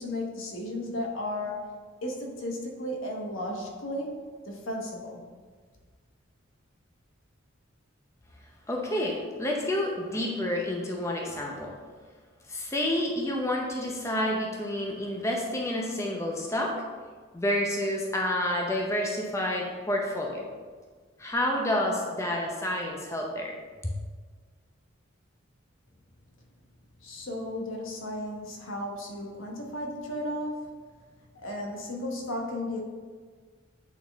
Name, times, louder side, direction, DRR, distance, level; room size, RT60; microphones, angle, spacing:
voice 1, 0.0-5.3 27.0-30.7 31.3-32.8, left 1 dB, 75° left, 0 dB, 1.1 m, -34 dB
voice 2, 8.7-11.7 12.5-16.7 17.3-20.4 21.2-23.5 23.8-23.9, left 1 dB, 15° left, -1 dB, 0.6 m, -29 dB
8.5 x 4.0 x 3.5 m, 1.5 s
head